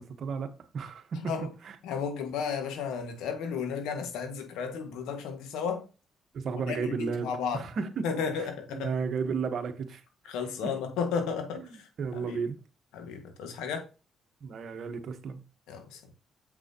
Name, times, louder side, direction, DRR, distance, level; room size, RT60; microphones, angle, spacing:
voice 1, 0.0-1.3 1.6-1.7 6.3-8.0 8.7-10.0 10.6-10.7 11.6-12.6 14.4-15.4, right 5 dB, 65° right, 1.2 m, -33 dB
voice 2, 1.1-1.5 1.8-5.9 6.7-7.6 8.0-8.9 10.3-12.4 12.9-13.9 15.7-16.1, left 6 dB, 90° left, 1.7 m, -33 dB
7.6 x 6.1 x 2.9 m
supercardioid pair, 70°, 0 cm